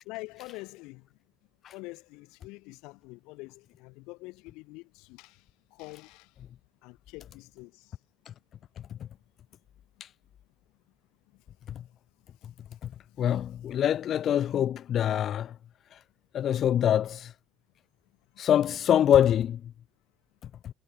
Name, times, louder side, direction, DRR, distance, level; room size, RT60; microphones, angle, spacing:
voice 1, 0.1-1.1 1.7-5.4 5.7-6.3 6.8-7.9 11.3-11.4 13.1-13.2, left 24 dB, 80° left, 2.4 m, -45 dB
voice 2, 13.2-15.5 15.9-16.0 16.3-17.3 18.4-19.6, left 10 dB, 40° left, 0.4 m, -24 dB
cardioid pair, 150°, 0 cm